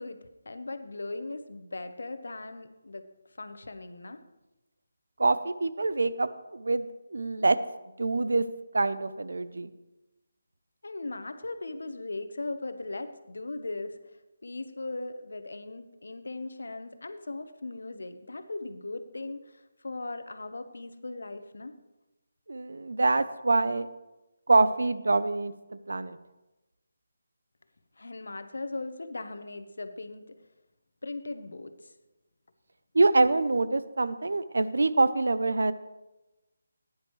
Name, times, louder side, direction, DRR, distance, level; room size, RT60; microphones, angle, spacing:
voice 1, 0.0-3.1 3.4-4.2 10.8-21.7 28.0-30.3 31.0-31.9, left 2 dB, 80° left, 9 dB, 1.0 m, -38 dB
voice 2, 5.2-7.6 8.0-8.4 8.7-9.7 22.5-23.9 24.5-26.2 32.9-35.7, right 3 dB, 80° right, 14 dB, 0.6 m, -25 dB
15.0 x 10.0 x 3.2 m, 1.0 s
figure-of-eight pair, 165°, 0 cm